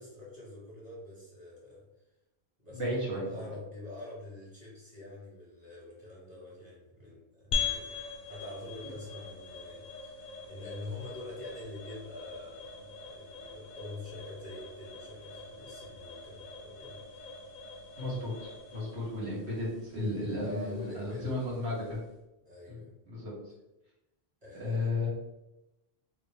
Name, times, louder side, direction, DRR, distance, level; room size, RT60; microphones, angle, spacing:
voice 1, 0.0-1.8 2.6-17.3 20.4-21.7 22.4-22.9 24.4-25.1, left 2 dB, 40° right, -5 dB, 1.5 m, -46 dB
voice 2, 2.7-3.2 18.0-22.0 22.7-22.8 23.1-23.3 24.6-25.1, left 2 dB, 85° right, -7 dB, 1.7 m, -34 dB
sound 1, 7.5-22.1, left 5 dB, 55° left, 0.5 m, -42 dB
3.2 x 2.5 x 3.5 m, 0.94 s
omnidirectional pair, 1.1 m